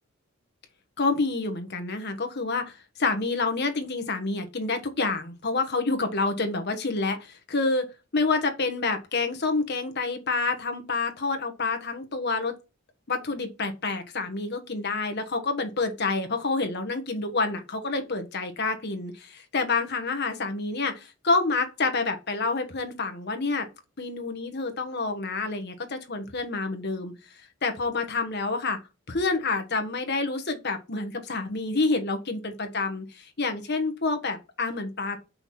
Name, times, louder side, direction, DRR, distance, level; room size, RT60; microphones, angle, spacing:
voice 1, 1.0-7.8 8.1-12.5 13.1-23.7 24.0-27.1 27.6-28.8 29.1-35.2, left 3 dB, 50° left, 1.3 m, -28 dB
5.8 x 5.6 x 4.3 m
head